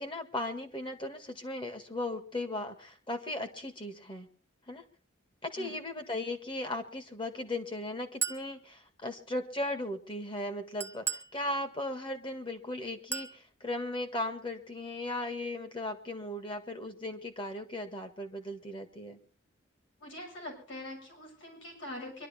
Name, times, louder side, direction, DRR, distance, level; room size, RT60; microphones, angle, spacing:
voice 1, 0.0-4.3 4.7-4.8 5.4-19.2, left 1 dB, 25° left, 7 dB, 1.7 m, -37 dB
Chink clink, 8.2-8.5 10.8-11.4 13.1-13.4, right 6 dB, 10° right, 0.6 m, -34 dB
voice 2, 20.0-22.3, left 1 dB, 70° left, 0 dB, 7.4 m, -43 dB
24.5 x 11.5 x 4.3 m, 0.40 s
head